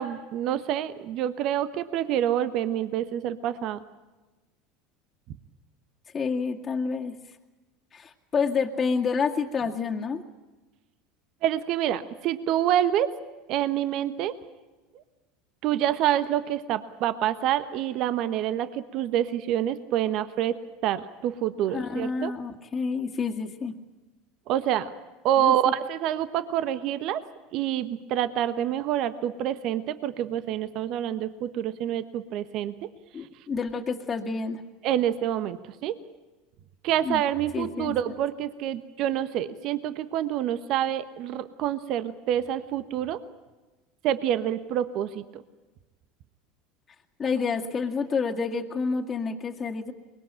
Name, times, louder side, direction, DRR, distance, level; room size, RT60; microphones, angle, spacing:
voice 1, 0.0-3.8 11.4-13.1 13.5-14.4 15.6-22.3 24.5-24.9 25.2-27.2 27.5-32.9 34.8-36.0 36.8-43.2 44.0-45.4, right 11 dB, 55° right, 12 dB, 1.2 m, -27 dB
voice 2, 6.1-7.1 7.9-10.2 21.7-23.7 25.4-25.6 33.1-34.6 37.0-37.2 37.5-37.9 47.2-49.9, left 5 dB, 30° left, 0 dB, 2.1 m, -28 dB
23.5 x 21.0 x 8.8 m, 1.2 s
hypercardioid pair, 85°, 0 cm